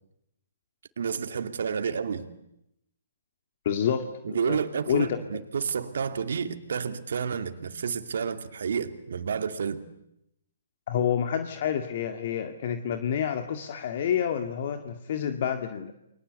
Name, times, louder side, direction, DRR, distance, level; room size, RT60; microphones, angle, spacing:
voice 1, 1.0-2.3 4.2-9.8, right 6 dB, 65° right, 2.6 m, -30 dB
voice 2, 3.7-4.6 4.9-5.2 10.9-15.9, left 8 dB, 50° left, 2.0 m, -28 dB
29.5 x 23.0 x 8.2 m
hypercardioid pair, 140°, 0 cm